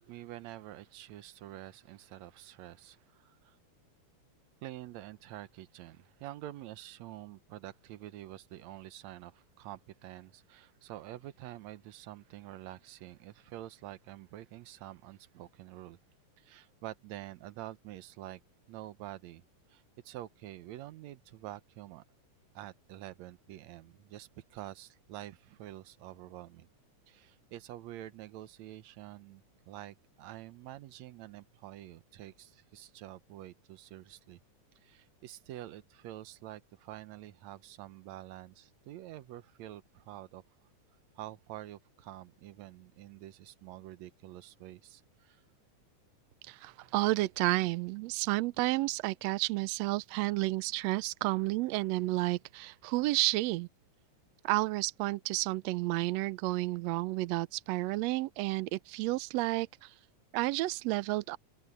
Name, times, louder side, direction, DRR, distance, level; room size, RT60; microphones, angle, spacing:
voice 1, 0.0-3.6 4.6-16.0 16.4-18.4 18.7-22.0 22.6-26.7 27.1-34.4 34.8-40.4 41.2-45.4, right 14 dB, 70° right, 2.0 m, -47 dB
voice 2, 46.5-53.7 54.4-59.9 60.3-61.4, right 19 dB, 85° right, 1.5 m, -31 dB
omnidirectional pair, 3.6 m